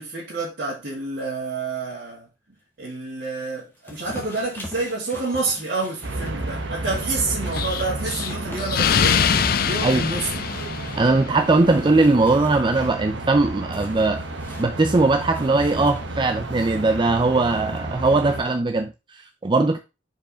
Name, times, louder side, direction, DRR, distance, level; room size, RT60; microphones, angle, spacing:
voice 1, 0.0-2.3 2.8-9.3 9.6-10.3, right 3 dB, 55° right, 2.4 m, -28 dB
sound 1, 3.8-11.0 11.4-12.9 13.7-16.3, left 1 dB, 10° left, 1.5 m, -41 dB
sound 2, 6.0-18.4, right 2 dB, 70° right, 1.1 m, -32 dB
Explosion, 7.5-11.4, left 7 dB, 50° left, 0.5 m, -23 dB
voice 2, 11.0-14.2 14.6-19.8, right 3 dB, 25° right, 0.5 m, -20 dB
5.2 x 4.8 x 5.0 m
head